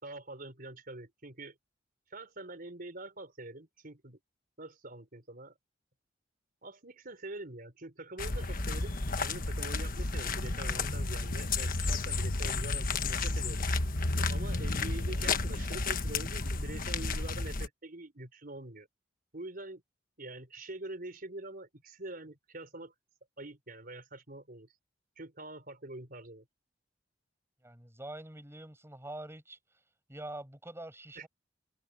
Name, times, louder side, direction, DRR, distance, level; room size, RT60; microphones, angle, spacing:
voice 1, 0.0-1.5 2.1-4.2 4.6-5.5 6.6-13.7 14.3-18.9 19.3-19.8 20.2-22.9 23.4-24.7 25.2-26.4 31.2-31.3, right 2 dB, 50° right, 4.8 m, -45 dB
sound 1, 8.2-17.7, left 3 dB, 50° left, 1.4 m, -32 dB
voice 2, 27.6-29.6 30.1-31.3, right 1 dB, 15° right, 6.7 m, -45 dB
head